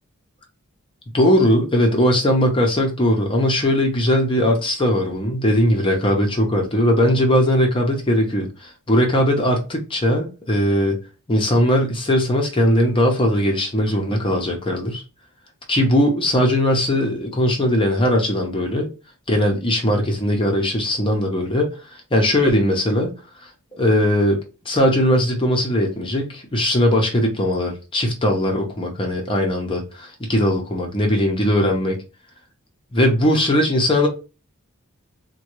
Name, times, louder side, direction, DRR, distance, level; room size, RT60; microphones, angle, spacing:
voice 1, 1.1-11.0 11.3-15.0 15.7-18.9 19.3-23.1 23.4-32.0 32.9-34.1, equal, 25° left, 0.7 m, -19 dB
3.6 x 2.2 x 3.0 m
head